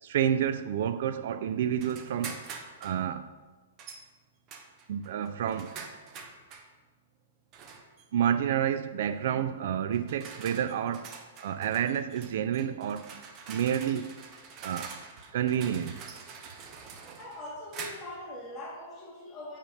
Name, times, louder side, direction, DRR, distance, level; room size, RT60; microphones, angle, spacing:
voice 1, 0.0-2.4 2.8-3.3 4.9-5.8 8.1-13.2 13.5-14.1 14.6-15.0 15.3-16.1, right 9 dB, 60° right, 0.3 m, -29 dB
sound 1, 1.8-3.0 3.8-4.1 4.5-6.7 7.5-8.1 9.1-9.3 9.9-18.2, right 5 dB, 30° right, 0.8 m, -45 dB
voice 2, 17.1-19.6, left 1 dB, 15° left, 1.7 m, -42 dB
5.2 x 5.1 x 6.3 m
hypercardioid pair, 150°, 0 cm